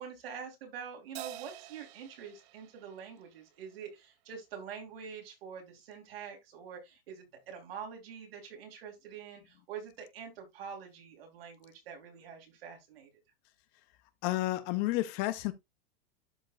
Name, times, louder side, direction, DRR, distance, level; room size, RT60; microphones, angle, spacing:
voice 1, 0.0-13.1, right 7 dB, 75° right, 3.7 m, -45 dB
Crash cymbal, 1.2-3.8, right 14 dB, 30° right, 0.5 m, -48 dB
voice 2, 14.2-15.5, left 17 dB, 30° left, 0.6 m, -31 dB
11.5 x 5.0 x 2.5 m
supercardioid pair, 160°, 30 cm